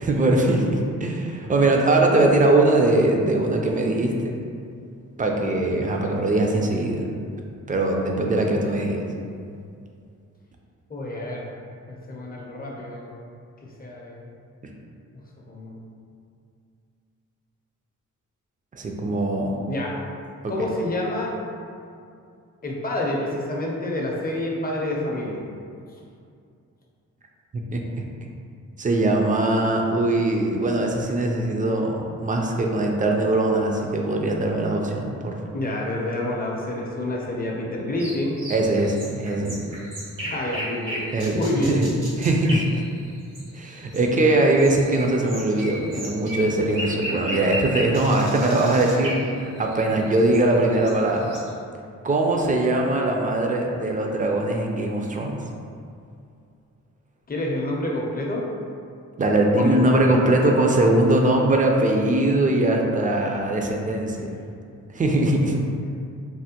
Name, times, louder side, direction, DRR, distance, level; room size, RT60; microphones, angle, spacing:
voice 1, 0.0-4.4 5.2-7.0 7.7-9.0 18.7-19.6 20.4-20.7 27.5-27.8 28.8-35.4 38.5-39.6 41.1-41.9 42.2-42.8 43.5-51.4 52.0-55.4 59.2-64.4 64.9-65.6, right 2 dB, 25° right, 1 dB, 0.4 m, -21 dB
voice 2, 10.9-11.5 11.9-13.1 13.6-14.3 15.5-15.8 19.7-20.0 20.5-21.4 22.6-25.4 35.5-38.4 40.2-41.0 41.3-41.8 57.3-58.5 59.5-59.7 60.2-60.4 63.3-63.4, left 1 dB, 30° left, -2 dB, 0.5 m, -28 dB
sound 1, 38.0-51.5, equal, 75° right, 1.0 m, -35 dB
3.3 x 2.1 x 2.8 m, 2.4 s
cardioid pair, 75°, 31 cm